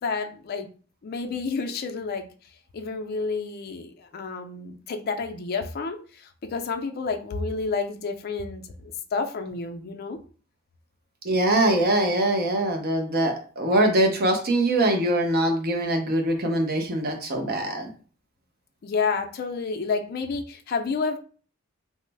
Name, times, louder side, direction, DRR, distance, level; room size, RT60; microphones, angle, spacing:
voice 1, 0.0-0.7 1.0-2.3 2.7-10.2 18.8-21.2, left 4 dB, 50° left, 6 dB, 0.4 m, -30 dB
voice 2, 11.2-17.9, right 1 dB, 50° right, 4 dB, 0.6 m, -23 dB
3.1 x 2.0 x 3.3 m, 0.41 s
head